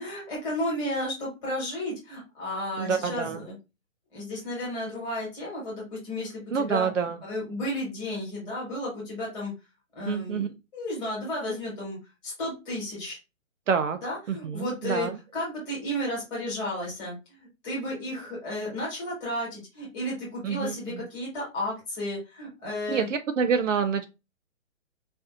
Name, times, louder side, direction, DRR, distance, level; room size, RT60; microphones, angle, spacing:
voice 1, 0.0-3.5 4.1-6.9 7.3-9.5 9.9-12.0 12.2-13.2 14.0-23.1, left 1 dB, 10° left, -5 dB, 1.3 m, -33 dB
voice 2, 2.8-3.4 6.5-7.2 10.1-10.5 13.7-14.0 14.3-15.2 20.4-21.0 22.9-24.1, right 6 dB, 65° right, 8 dB, 0.6 m, -27 dB
4.2 x 2.5 x 2.4 m, 0.26 s
hypercardioid pair, 165°, 41 cm